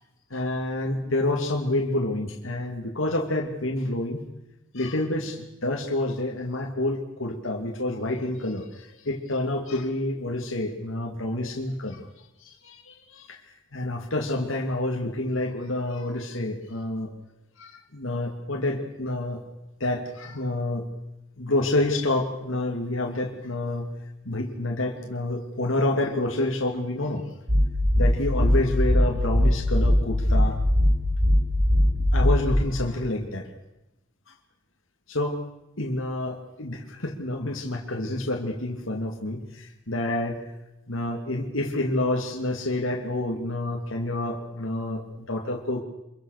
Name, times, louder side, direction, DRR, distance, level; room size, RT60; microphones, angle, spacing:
voice 1, 0.3-4.3 4.7-12.1 12.4-17.1 17.6-19.4 19.8-20.9 21.4-23.9 24.2-27.2 28.0-30.6 32.0-33.5 35.1-35.4 35.8-40.4 40.9-45.8, left 1 dB, 75° left, 1 dB, 2.7 m, -28 dB
sound 1, 27.5-32.6, equal, 65° right, 7.5 m, -20 dB
26.0 x 22.5 x 6.7 m, 0.92 s
head